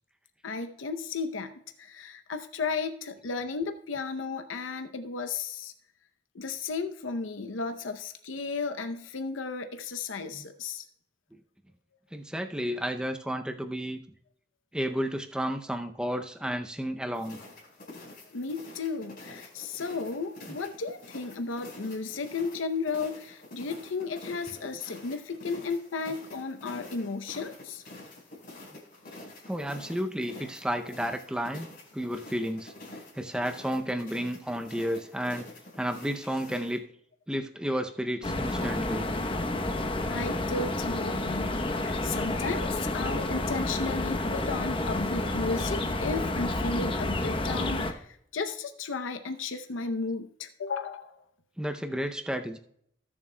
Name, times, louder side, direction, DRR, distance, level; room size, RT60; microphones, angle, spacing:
voice 1, 0.4-5.7 6.3-10.8 18.3-27.8 40.1-51.2, left 4 dB, 90° left, 8 dB, 0.7 m, -34 dB
voice 2, 12.1-14.0 14.7-17.4 29.5-31.7 31.9-32.7 33.1-35.4 35.8-36.8 37.3-39.1 51.6-52.6, equal, 5° right, 6 dB, 0.5 m, -32 dB
sound 1, 17.1-36.8, left 2 dB, 50° left, 4.6 m, -48 dB
sound 2, 38.2-47.9, left 2 dB, 25° left, 0.8 m, -30 dB
19.5 x 7.3 x 2.2 m, 0.69 s
head